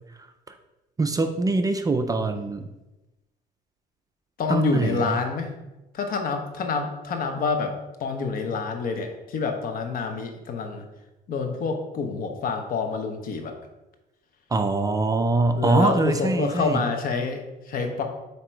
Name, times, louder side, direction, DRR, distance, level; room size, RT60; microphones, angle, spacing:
voice 1, 1.0-2.7 4.5-5.2 14.5-16.9, right 3 dB, 20° right, 7 dB, 0.4 m, -23 dB
voice 2, 4.4-5.5 5.9-10.8 11.3-13.5 15.6-18.0, left 4 dB, 55° left, 5 dB, 1.0 m, -27 dB
7.7 x 2.9 x 4.6 m, 1.0 s
cardioid pair, 110°, 17 cm